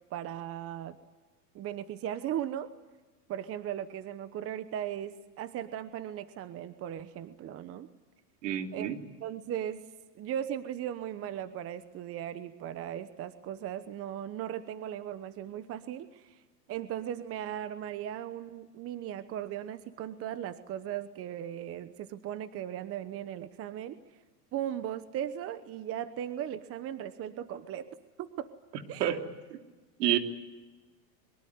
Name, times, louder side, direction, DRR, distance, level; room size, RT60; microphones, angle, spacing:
voice 1, 0.1-1.0 1.5-2.7 3.3-7.9 8.7-8.9 9.2-9.8 10.1-16.4 16.7-24.0 24.5-27.9 28.2-28.5 28.9-29.1, right 10 dB, 30° right, 12 dB, 1.1 m, -37 dB
voice 2, 8.4-9.0 29.0-29.2 29.5-29.6 30.0-30.2, right 11 dB, 70° right, 5 dB, 3.3 m, -28 dB
23.5 x 23.5 x 9.4 m, 1.2 s
supercardioid pair, 135°, 50 cm